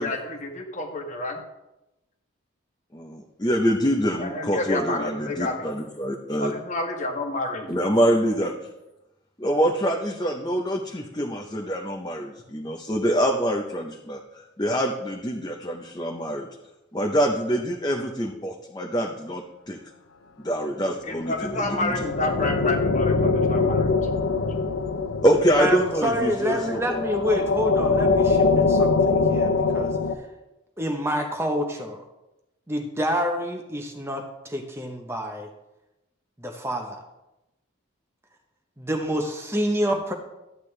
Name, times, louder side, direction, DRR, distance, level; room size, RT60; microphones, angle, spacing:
voice 1, 0.0-1.4 4.2-5.7 6.4-7.7 21.0-23.9, left 2 dB, 35° left, 3 dB, 1.5 m, -29 dB
voice 2, 2.9-6.5 7.7-8.7 9.4-16.5 16.9-19.8 20.4-22.0 25.2-26.8, equal, 20° left, 0 dB, 0.8 m, -25 dB
sound 1, 21.3-30.1, left 4 dB, 90° left, 0.7 m, -23 dB
voice 3, 25.6-30.0 30.8-32.0 32.7-35.5 36.4-37.0 38.8-40.1, equal, 10° right, 3 dB, 0.9 m, -27 dB
13.5 x 9.0 x 3.3 m, 0.96 s
head